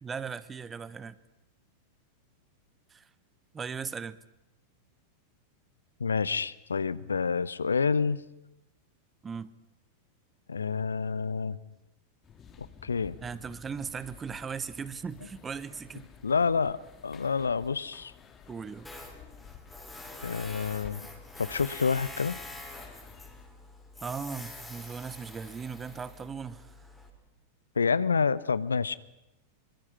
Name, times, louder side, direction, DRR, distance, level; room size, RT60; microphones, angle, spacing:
voice 1, 0.0-1.2 2.9-3.0 3.5-4.2 9.2-9.5 13.2-16.1 18.5-18.9 24.0-26.7, right 6 dB, 20° right, 16 dB, 1.0 m, -38 dB
voice 2, 6.0-8.2 10.5-11.6 12.8-13.2 16.2-16.8 17.0-18.1 20.2-21.1 21.4-22.4 27.8-29.0, left 5 dB, 75° left, 19 dB, 0.7 m, -28 dB
sound 1, 12.2-23.5, left 7 dB, 25° left, 2.3 m, -53 dB
Tools, 18.8-27.1, left 2 dB, 5° left, 4.2 m, -46 dB
25.5 x 24.0 x 5.9 m, 0.92 s
figure-of-eight pair, 90°, 0 cm